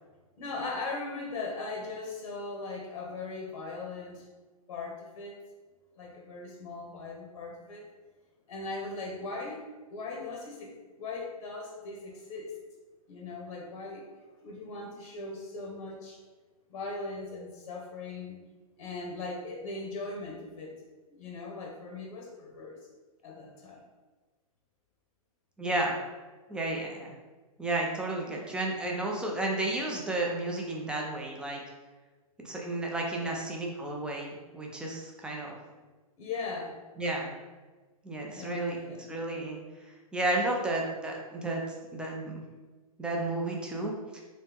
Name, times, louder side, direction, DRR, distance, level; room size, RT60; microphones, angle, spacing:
voice 1, 0.4-4.3 4.7-5.4 6.0-7.8 8.5-9.6 9.9-10.7 11.0-12.5 13.1-14.0 14.4-16.2 16.7-18.4 18.8-20.7 21.1-22.8 23.2-23.8 28.2-28.3 33.2-33.5 36.2-36.7 38.3-39.1, left 3 dB, 70° left, -1 dB, 0.9 m, -39 dB
voice 2, 25.6-26.0 26.5-27.1 27.6-31.6 32.4-35.6 37.0-37.3 38.0-38.8 39.1-39.6 40.1-41.6 41.9-42.4 43.0-44.2, right 2 dB, 5° right, -1 dB, 0.4 m, -32 dB
3.2 x 3.1 x 3.4 m, 1.3 s
hypercardioid pair, 140°, 19 cm